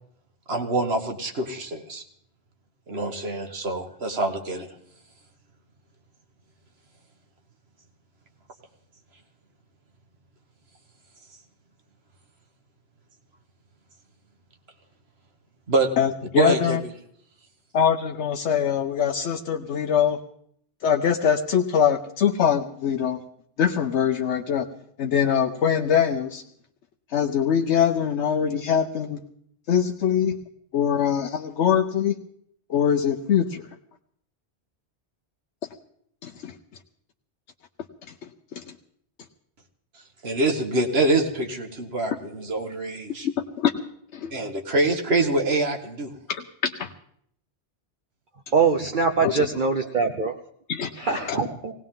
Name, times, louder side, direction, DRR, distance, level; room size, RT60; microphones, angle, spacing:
voice 1, 0.5-2.0 2.9-4.7 15.7-15.9 16.4-16.8 40.2-43.3 44.3-46.1, right 2 dB, 65° right, 5 dB, 1.7 m, -25 dB
voice 2, 16.0-16.8 17.7-20.2 20.8-23.2 23.6-24.7 25.0-26.4 27.1-29.2 29.7-30.4 30.7-32.1 32.7-33.6 36.2-36.5 38.5-38.6 42.1-42.2 43.2-43.7 44.1-44.3 46.3-46.9 49.2-49.3 50.7-50.9 51.3-51.4, left 8 dB, 80° left, 3 dB, 1.1 m, -23 dB
voice 3, 48.5-50.4 50.9-51.7, right 5 dB, 50° right, 4 dB, 0.9 m, -23 dB
18.5 x 18.0 x 3.8 m, 0.67 s
omnidirectional pair, 1.2 m